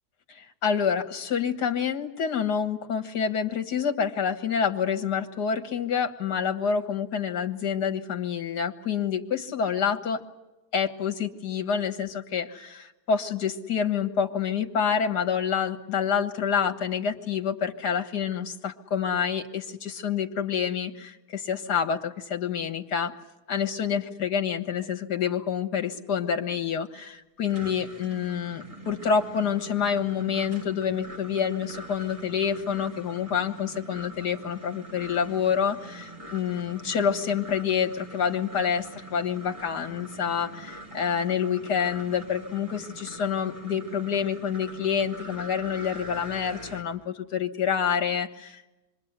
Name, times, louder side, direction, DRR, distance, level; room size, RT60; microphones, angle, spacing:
voice 1, 0.3-10.2 10.7-23.1 23.5-48.6, left 7 dB, 70° left, 6 dB, 2.1 m, -27 dB
sound 1, 27.2-46.8, right 1 dB, 20° right, 3.1 m, -43 dB
27.0 x 23.0 x 8.1 m, 1.0 s
omnidirectional pair, 1.8 m